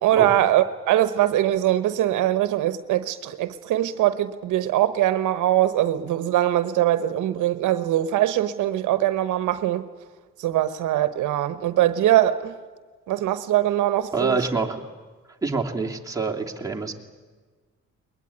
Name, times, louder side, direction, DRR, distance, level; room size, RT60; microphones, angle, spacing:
voice 1, 0.0-9.8 10.4-12.5 13.1-14.4, right 13 dB, 85° right, 1.1 m, -22 dB
voice 2, 14.1-14.8 15.4-16.9, right 4 dB, 10° right, 2.9 m, -26 dB
21.0 x 20.5 x 9.8 m
cardioid pair, 90°, 30 cm